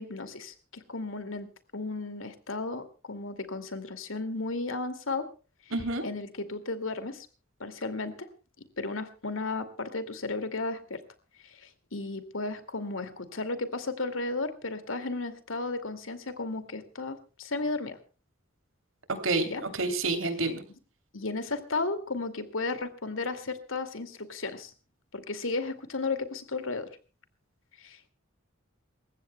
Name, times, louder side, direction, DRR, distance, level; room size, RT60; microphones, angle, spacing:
voice 1, 0.0-5.3 6.0-7.3 7.6-8.1 8.6-11.0 11.4-18.0 19.5-19.6 21.1-24.7 25.1-26.9 27.8-28.1, left 3 dB, 80° left, 9 dB, 2.3 m, -34 dB
voice 2, 5.7-6.0 19.1-20.6, right 3 dB, 80° right, 7 dB, 3.2 m, -29 dB
28.0 x 15.5 x 2.2 m, 0.35 s
head